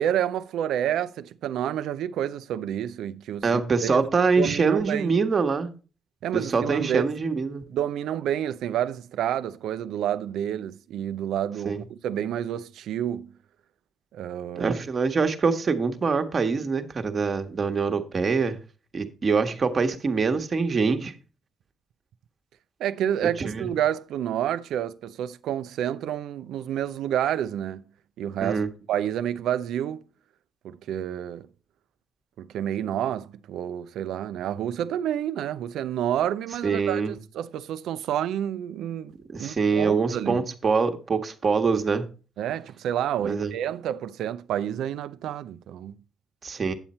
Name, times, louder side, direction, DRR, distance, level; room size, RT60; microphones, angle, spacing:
voice 1, 0.0-4.1 4.4-5.2 6.2-7.1 7.7-13.3 14.1-14.8 22.8-27.8 28.2-28.6 28.9-30.0 30.6-31.5 32.4-39.1 39.4-40.5 42.4-46.0, right 10 dB, 80° right, 0.5 m, -29 dB
voice 2, 3.4-5.7 6.3-7.6 11.6-11.8 14.6-18.6 18.9-21.1 23.4-23.7 28.4-28.7 36.6-37.2 39.3-42.1 43.2-43.5 46.4-46.7, right 4 dB, 40° right, 1.2 m, -24 dB
9.0 x 7.3 x 4.2 m
cardioid pair, 90°, 0 cm